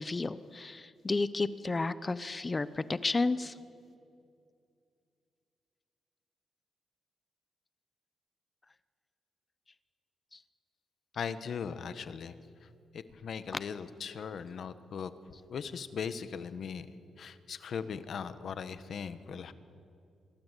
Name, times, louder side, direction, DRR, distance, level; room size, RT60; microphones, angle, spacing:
voice 1, 0.0-3.5 10.3-10.4, left 3 dB, 25° left, 14 dB, 0.9 m, -32 dB
voice 2, 11.1-12.7 12.9-15.1 15.5-16.9 17.2-19.5, left 6 dB, 60° left, 12 dB, 1.4 m, -39 dB
27.0 x 22.0 x 8.4 m, 2.4 s
cardioid pair, 95°, 0 cm